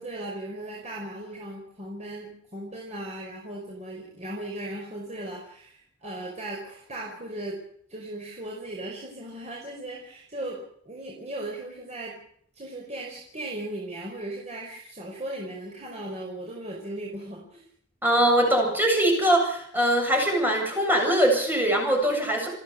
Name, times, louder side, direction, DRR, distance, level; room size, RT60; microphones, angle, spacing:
voice 1, 0.0-7.6 7.9-12.2 12.6-17.6, right 1 dB, 35° right, -2 dB, 5.3 m, -37 dB
voice 2, 18.0-22.5, right 1 dB, 10° right, 1 dB, 7.7 m, -22 dB
29.5 x 10.5 x 8.3 m, 0.65 s
head